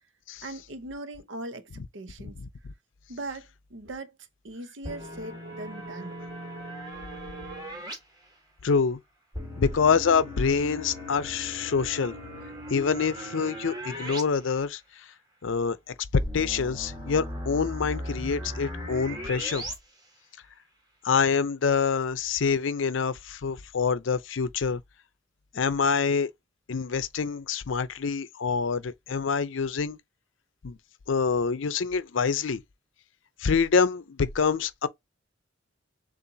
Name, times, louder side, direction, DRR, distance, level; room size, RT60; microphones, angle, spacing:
voice 1, 0.4-2.4 3.1-4.2 4.4-6.2, right 2 dB, 70° right, 0.8 m, -40 dB
sound 1, 4.8-8.0 9.3-14.2 14.5-14.6 16.2-19.7, equal, 25° right, 2.0 m, -38 dB
voice 2, 8.6-9.0 9.6-12.2 12.7-14.8 15.4-19.6 21.0-24.8 25.5-26.3 26.7-30.0 30.6-30.8 31.1-32.6 33.4-34.9, left 5 dB, 80° left, 0.5 m, -26 dB
6.8 x 2.5 x 2.7 m
head